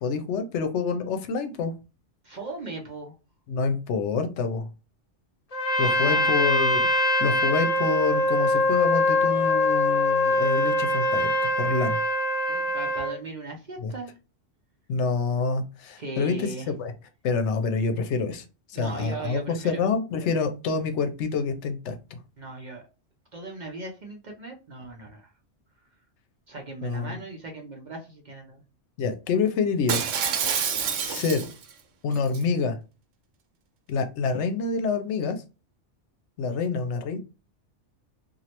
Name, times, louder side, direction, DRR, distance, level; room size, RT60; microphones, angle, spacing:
voice 1, 0.0-1.7 3.5-4.7 5.8-12.0 13.8-13.9 14.9-16.5 16.8-16.9 17.2-18.4 18.7-22.2 26.8-27.2 29.0-30.0 31.0-31.4 32.0-32.8 33.9-35.4 36.4-37.2, left 5 dB, 75° left, 7 dB, 0.9 m, -27 dB
voice 2, 2.2-3.1 5.8-6.4 12.5-14.1 16.0-16.7 18.8-19.8 22.4-22.8 23.3-25.3 26.5-28.6, right 3 dB, 45° right, 1 dB, 0.7 m, -38 dB
Trumpet, 5.5-13.2, left 1 dB, 40° left, 0.6 m, -23 dB
Shatter, 29.9-31.7 32.1-32.4, right 7 dB, 85° right, 1.0 m, -27 dB
3.1 x 2.5 x 2.8 m, 0.30 s
omnidirectional pair, 1.2 m